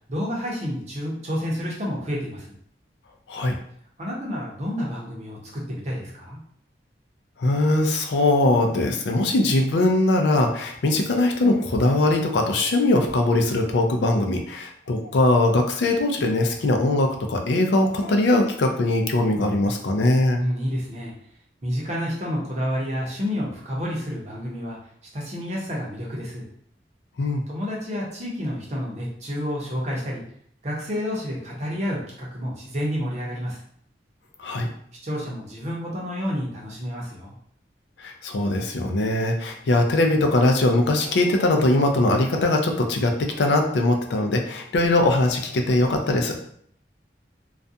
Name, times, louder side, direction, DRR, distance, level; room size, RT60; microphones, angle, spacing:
voice 1, 0.1-2.5 4.0-6.4 20.3-21.1 21.6-24.8 25.1-26.4 27.5-30.2 30.6-33.6 35.0-37.4, equal, 40° right, -3 dB, 0.7 m, -29 dB
voice 2, 7.4-20.4 27.2-27.4 34.4-34.7 38.0-46.4, left 2 dB, 70° left, 3 dB, 0.4 m, -21 dB
2.4 x 2.2 x 2.6 m, 0.64 s
head